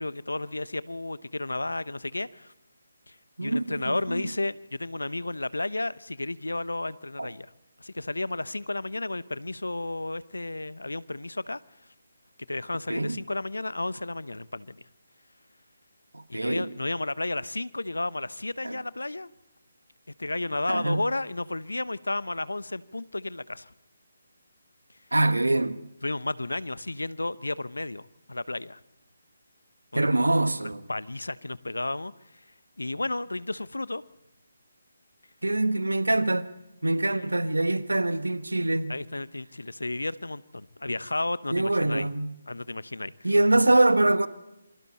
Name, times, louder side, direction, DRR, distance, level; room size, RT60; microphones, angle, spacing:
voice 1, 0.0-2.5 3.1-7.5 7.8-11.6 12.5-14.8 16.3-19.3 20.2-23.7 26.0-28.8 29.9-30.1 30.9-32.1 32.8-34.0 37.1-37.3 38.9-42.1 42.5-43.3, left 2 dB, 85° left, 0.9 m, -32 dB
voice 2, 3.4-4.3 7.2-7.3 12.9-13.2 16.1-16.7 18.6-18.8 20.7-21.0 25.1-25.8 29.9-30.8 35.4-36.5 36.8-38.9 41.5-42.4 43.2-44.3, right 2 dB, 85° right, 1.4 m, -24 dB
27.5 x 24.5 x 4.3 m
figure-of-eight pair, 150°, 0 cm